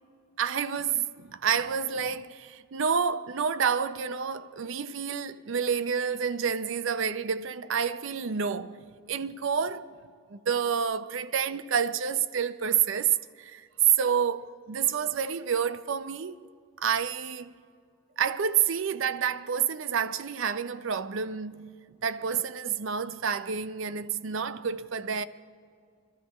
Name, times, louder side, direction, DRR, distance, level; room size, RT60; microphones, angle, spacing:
voice 1, 0.4-9.9 10.3-16.5 16.8-17.5 18.2-21.7 22.0-25.2, right 7 dB, 60° right, 0.5 m, -29 dB
25.5 x 13.0 x 3.0 m
head